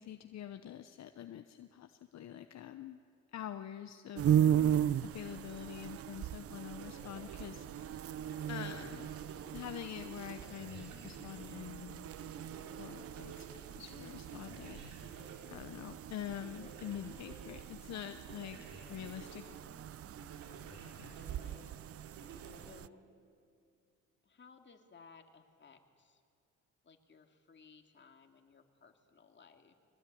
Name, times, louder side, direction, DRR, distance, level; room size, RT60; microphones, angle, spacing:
voice 1, 0.0-3.0 3.3-7.9 8.5-9.1 9.5-13.4 13.8-15.1 15.5-19.4, left 10 dB, 60° left, 8 dB, 1.0 m, -46 dB
sound 1, 4.1-22.9, right 10 dB, 50° right, 0.5 m, -37 dB
voice 2, 5.9-6.2 13.5-13.8 21.2-21.7 22.4-23.0 24.2-26.2 26.8-29.7, left 5 dB, 40° left, 4 dB, 2.4 m, -60 dB
sound 2, 6.8-23.3, right 4 dB, 80° right, 4.9 m, -53 dB
22.5 x 19.0 x 9.4 m, 2.2 s
cardioid pair, 90°, 30 cm